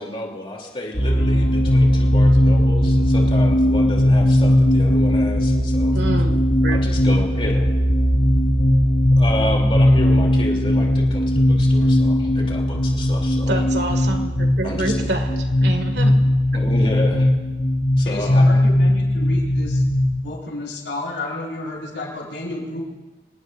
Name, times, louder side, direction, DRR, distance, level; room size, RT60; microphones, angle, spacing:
voice 1, 0.0-6.0 6.7-7.7 9.2-13.6 14.6-15.1 16.5-17.3 18.0-18.4, left 1 dB, 30° left, -1 dB, 3.1 m, -30 dB
sound 1, 0.9-20.2, left 1 dB, 50° left, 3.7 m, -18 dB
voice 2, 5.9-6.8 13.5-15.3 15.6-16.2, right 2 dB, 65° right, 5 dB, 2.0 m, -27 dB
voice 3, 18.0-19.8 20.2-22.8, left 2 dB, 80° left, -3 dB, 5.4 m, -31 dB
27.0 x 18.5 x 2.6 m, 1.2 s
head